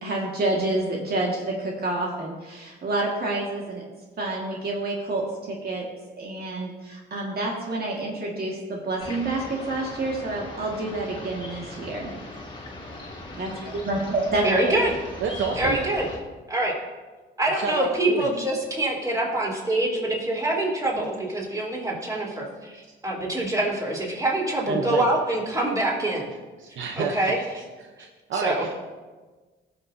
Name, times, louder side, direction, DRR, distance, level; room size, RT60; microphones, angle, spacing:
voice 1, 0.0-3.8 4.2-5.8 6.2-12.1 13.3-14.8, right 2 dB, 50° right, -2 dB, 1.8 m, -28 dB
sound 1, 9.0-16.2, left 1 dB, 25° left, 2.1 m, -39 dB
voice 2, 14.4-14.9 15.6-16.1 16.5-16.7 17.4-26.2 27.0-27.4 28.3-28.6, right 1 dB, 15° right, -4 dB, 3.6 m, -25 dB
voice 3, 15.2-15.8 17.5-18.3 24.7-25.1 26.6-27.4 27.8-28.7, right 5 dB, 75° right, 2 dB, 0.8 m, -29 dB
19.0 x 6.5 x 2.7 m, 1.3 s
cardioid pair, 90°, 20 cm